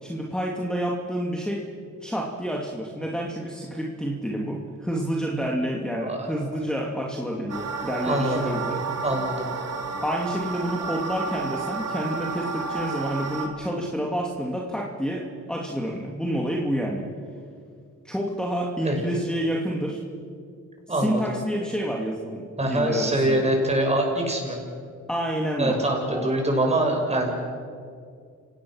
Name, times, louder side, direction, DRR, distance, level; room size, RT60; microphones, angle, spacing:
voice 1, 0.0-1.7 2.0-8.8 10.0-17.1 18.0-20.0 20.9-23.4 25.1-25.8 26.1-26.3, equal, 5° left, -1 dB, 2.5 m, -29 dB
voice 2, 5.9-6.5 8.0-8.4 9.0-9.5 18.8-19.0 20.9-21.2 22.6-24.6 25.6-27.3, right 1 dB, 20° right, 1 dB, 6.4 m, -24 dB
sound 1, 7.5-13.5, right 4 dB, 55° right, 2.9 m, -31 dB
29.5 x 17.5 x 6.4 m, 2.3 s
cardioid pair, 90°, 30 cm